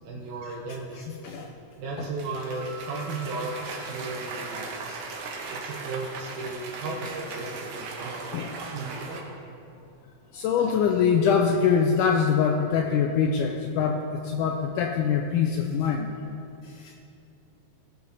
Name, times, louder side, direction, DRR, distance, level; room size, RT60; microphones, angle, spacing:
voice 1, 0.0-1.0 1.8-5.0 5.5-8.3 8.7-9.3, right 3 dB, 85° right, -4 dB, 2.9 m, -35 dB
voice 2, 1.0-1.5 2.0-2.1 8.3-8.6 10.3-16.1 16.6-16.9, left 6 dB, 80° left, 3 dB, 1.8 m, -24 dB
Cheering / Applause, 2.0-9.2, right 4 dB, 70° right, 2.5 m, -38 dB
Piano, 2.5-5.4, right 3 dB, 50° right, 2.6 m, -49 dB
17.5 x 7.0 x 4.0 m, 2.7 s
omnidirectional pair, 4.1 m